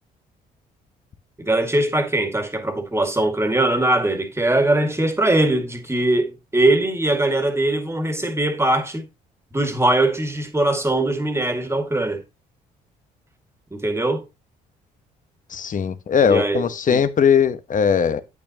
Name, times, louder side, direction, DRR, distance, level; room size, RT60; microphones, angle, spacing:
voice 1, 1.4-9.1 9.5-12.2 13.7-14.2 16.2-17.0, right 1 dB, 15° right, 2.1 m, -21 dB
voice 2, 15.5-18.2, left 7 dB, 45° left, 1.1 m, -19 dB
8.6 x 8.4 x 2.9 m
hypercardioid pair, 55°, 19 cm